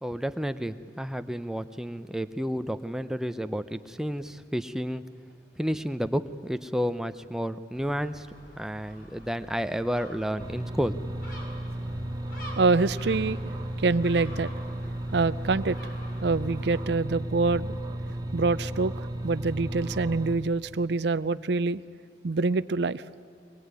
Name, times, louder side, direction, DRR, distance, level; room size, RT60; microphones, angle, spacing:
voice 1, 0.0-5.0 5.6-8.3 8.6-11.0, equal, 5° right, 10 dB, 0.6 m, -31 dB
Gull seagull, 7.7-16.8, equal, 50° left, 5.4 m, -48 dB
sound 1, 10.4-20.4, right 1 dB, 20° right, 1.1 m, -34 dB
voice 2, 12.6-13.4 13.8-14.5 15.1-15.8 16.2-17.7 18.3-18.9 19.2-21.8 22.2-23.0, right 3 dB, 60° right, 14 dB, 0.5 m, -25 dB
23.0 x 21.0 x 9.6 m, 2.3 s
head